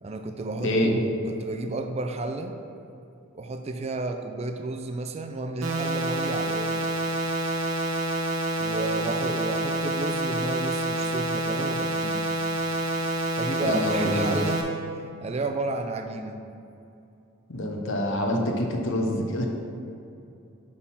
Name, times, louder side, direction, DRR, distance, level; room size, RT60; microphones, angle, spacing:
voice 1, 0.0-2.6 3.3-6.9 8.6-12.3 13.4-14.6 14.9-16.4, right 2 dB, 30° right, 5 dB, 0.4 m, -32 dB
voice 2, 0.6-0.9 13.6-14.3 17.5-19.5, left 1 dB, 65° left, 1 dB, 0.8 m, -26 dB
sound 1, 5.6-14.6, right 2 dB, 70° right, 0.7 m, -28 dB
6.2 x 3.7 x 5.6 m, 2.7 s
head